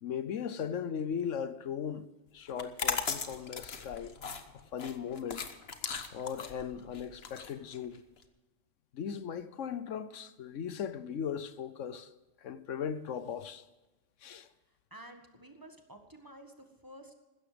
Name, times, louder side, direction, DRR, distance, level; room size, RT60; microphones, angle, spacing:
voice 1, 0.0-2.1 2.3-4.1 4.7-5.5 6.1-8.0 8.9-12.1 12.4-13.6 14.2-14.5, left 8 dB, 75° left, 1.2 m, -38 dB
sound 1, 2.5-8.2, left 6 dB, 55° left, 1.3 m, -38 dB
voice 2, 14.7-17.1, right 1 dB, 15° right, 1.6 m, -52 dB
16.0 x 13.5 x 5.1 m
omnidirectional pair, 1.3 m